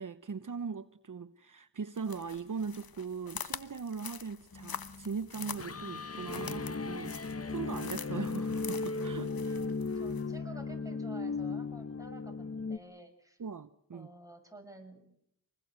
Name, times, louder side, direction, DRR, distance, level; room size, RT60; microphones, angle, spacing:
voice 1, 0.0-7.2 7.5-9.6 13.4-14.1, right 5 dB, 60° right, 0.9 m, -40 dB
sound 1, 2.0-10.2, left 6 dB, 80° left, 1.2 m, -46 dB
sound 2, 4.5-12.8, left 4 dB, 40° left, 1.1 m, -36 dB
voice 2, 9.5-13.4 13.9-15.0, right 2 dB, 10° right, 7.4 m, -52 dB
26.5 x 20.5 x 8.1 m
wide cardioid pair, 55°, 35 cm